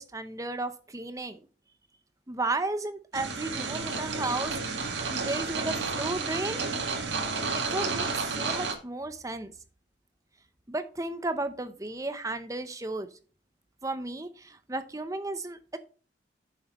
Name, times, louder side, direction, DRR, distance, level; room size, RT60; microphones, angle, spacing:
voice 1, 0.0-1.4 2.3-6.7 7.5-9.5 10.7-13.1 13.8-15.8, right 2 dB, 20° right, 10 dB, 0.7 m, -34 dB
sound 1, 3.1-8.7, right 4 dB, 75° right, 1.8 m, -31 dB
9.5 x 7.1 x 3.0 m, 0.38 s
head